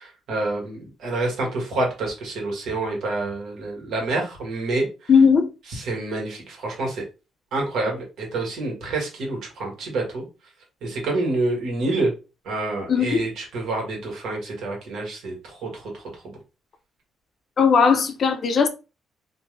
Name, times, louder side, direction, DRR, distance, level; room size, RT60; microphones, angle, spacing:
voice 1, 0.0-4.9 5.7-7.0 7.5-10.2 10.8-12.1 12.4-16.3, right 2 dB, 80° right, 1.4 m, -27 dB
voice 2, 5.1-5.5 12.9-13.2 17.6-18.7, left 6 dB, 55° left, 0.6 m, -17 dB
3.0 x 2.2 x 3.2 m
cardioid pair, 90°, 0 cm